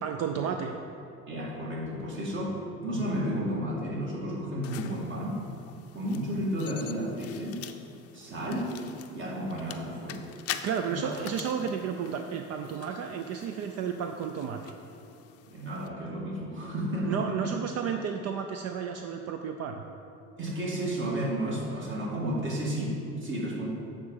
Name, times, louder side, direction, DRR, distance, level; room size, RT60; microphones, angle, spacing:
voice 1, 0.0-0.8 10.6-14.7 17.0-19.8, right 7 dB, 60° right, 5 dB, 0.5 m, -32 dB
voice 2, 1.3-5.4 5.9-7.7 8.1-8.7 9.1-10.2 10.8-11.1 15.4-17.5 20.4-23.7, equal, 40° right, -3 dB, 1.9 m, -32 dB
sound 1, 4.6-15.9, left 10 dB, 55° left, 0.5 m, -45 dB
8.2 x 3.8 x 6.4 m, 2.6 s
cardioid pair, 110°, 30 cm